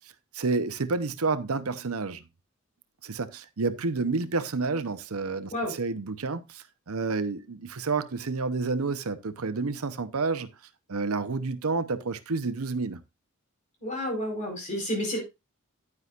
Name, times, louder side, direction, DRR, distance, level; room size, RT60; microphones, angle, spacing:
voice 1, 0.3-2.2 3.0-10.5 10.9-13.0, right 4 dB, 80° right, 0.8 m, -29 dB
voice 2, 13.8-15.2, equal, 35° left, 4.6 m, -30 dB
9.7 x 9.6 x 2.5 m
head